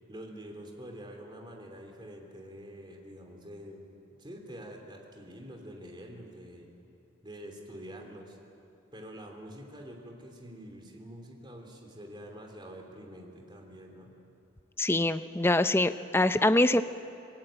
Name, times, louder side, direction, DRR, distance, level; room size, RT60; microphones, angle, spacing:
voice 1, 0.1-3.9 4.2-6.7 7.2-8.4 8.9-14.1, equal, 25° right, 2 dB, 3.2 m, -46 dB
voice 2, 14.8-16.8, left 2 dB, 10° left, 11 dB, 0.6 m, -24 dB
26.5 x 17.5 x 9.0 m, 2.6 s
head